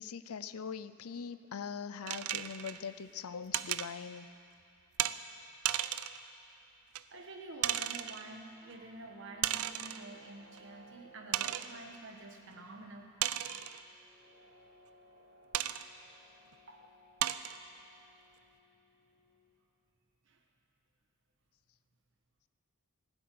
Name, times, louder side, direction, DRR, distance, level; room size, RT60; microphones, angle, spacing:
voice 1, 0.0-4.3, left 6 dB, 80° left, 14 dB, 0.5 m, -42 dB
sound 1, 2.1-2.8 3.5-3.9 5.0-5.2 5.7-6.2 7.0-7.1 7.6-8.2 9.4-10.1 10.6-10.7 11.3-11.7 13.2-13.8 15.5-15.9 16.5-16.6 17.2-17.6, right 12 dB, 90° right, 0.5 m, -34 dB
voice 2, 7.1-13.1 16.7-16.8 20.2-20.4, right 2 dB, 60° right, 2 dB, 1.4 m, -48 dB
sound 2, 8.4-19.5, right 2 dB, 60° left, 3.7 m, -62 dB
17.0 x 8.0 x 9.4 m, 2.7 s
head